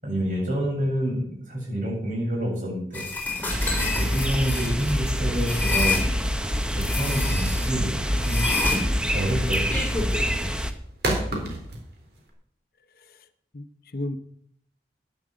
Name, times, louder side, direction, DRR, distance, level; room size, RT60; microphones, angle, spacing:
voice 1, 0.0-3.0 3.7-5.9 6.7-8.5 9.1-9.7 10.2-10.3, equal, 45° right, -2 dB, 7.4 m, -28 dB
sound 1, 2.9-6.0 6.8-7.7 8.2-10.2, left 2 dB, 10° left, 3.7 m, -28 dB
sound 2, 3.5-10.7, equal, 5° right, 0.9 m, -26 dB
sound 3, 10.8-12.3, right 1 dB, 65° right, 3.8 m, -33 dB
voice 2, 11.3-11.7 12.9-13.3 13.5-14.2, left 1 dB, 55° left, 10 dB, 0.9 m, -35 dB
11.5 x 9.8 x 7.7 m, 0.67 s
head